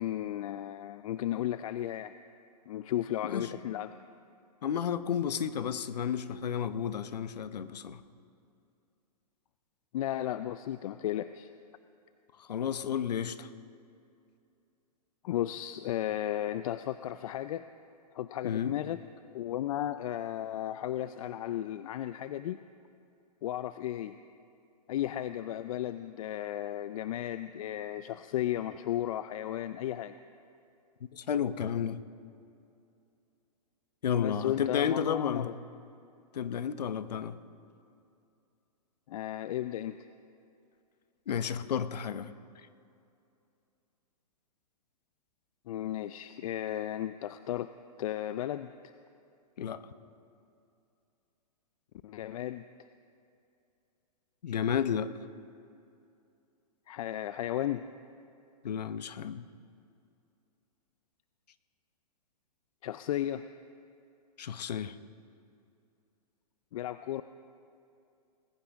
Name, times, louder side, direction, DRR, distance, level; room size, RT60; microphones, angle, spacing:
voice 1, 0.0-2.1 2.7-4.0 9.9-11.5 15.2-17.6 18.1-19.0 19.3-22.6 23.4-24.2 24.9-30.1 34.2-35.5 39.1-40.0 45.7-47.7 48.0-48.7 52.0-52.6 56.9-57.9 62.8-63.4 66.7-67.2, left 12 dB, 55° left, 12 dB, 0.5 m, -34 dB
voice 2, 4.6-8.0 12.5-13.5 18.4-18.7 31.1-32.0 34.0-35.5 36.3-37.4 41.3-42.3 49.6-49.8 54.4-55.1 58.6-59.5 64.4-65.0, left 8 dB, 75° left, 13 dB, 0.8 m, -32 dB
20.0 x 15.0 x 3.6 m, 2.6 s
hypercardioid pair, 125°, 21 cm